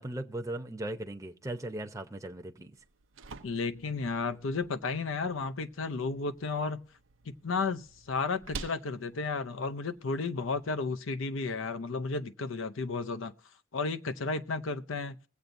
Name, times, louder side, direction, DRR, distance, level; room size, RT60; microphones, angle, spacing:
voice 1, 0.0-2.7, right 1 dB, 15° right, 0.7 m, -38 dB
sound 1, 2.7-10.7, right 4 dB, 85° right, 0.6 m, -50 dB
voice 2, 3.4-6.8 7.4-13.3 13.7-15.1, left 4 dB, 85° left, 0.6 m, -33 dB
21.0 x 8.0 x 2.6 m
head